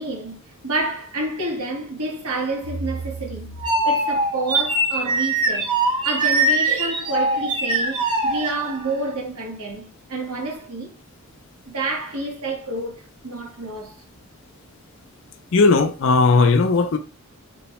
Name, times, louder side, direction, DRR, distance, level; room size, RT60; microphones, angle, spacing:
voice 1, 0.0-3.6 3.8-5.7 6.0-10.9 11.7-14.0, right 2 dB, 85° right, 1.1 m, -29 dB
sound 1, 2.6-9.0, right 2 dB, 20° right, 0.5 m, -23 dB
voice 2, 15.5-17.0, left 3 dB, 55° left, 0.4 m, -16 dB
4.0 x 2.1 x 2.9 m
head